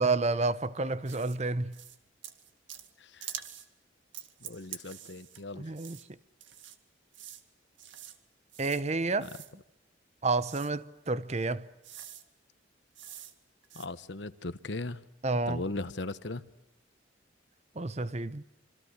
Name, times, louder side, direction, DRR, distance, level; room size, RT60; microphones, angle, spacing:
voice 1, 0.0-1.8 5.5-6.0 8.6-9.3 10.2-11.7 15.2-15.6 17.8-18.4, right 3 dB, 35° right, 0.9 m, -30 dB
sound 1, 1.1-1.4 1.7-2.0 2.2-2.9 3.2-3.7 4.1-5.4 5.7-6.0 6.4-6.8 7.1-7.4 7.8-8.2 8.5-8.8 9.2-9.5 10.4-10.7 11.4-11.5 11.8-12.2 12.9-13.3 13.6-13.9, right 10 dB, 75° right, 2.2 m, -45 dB
voice 2, 4.4-5.7 9.2-9.3 13.7-15.0 15.5-16.4, left 2 dB, 60° left, 1.2 m, -38 dB
27.0 x 26.0 x 6.5 m
head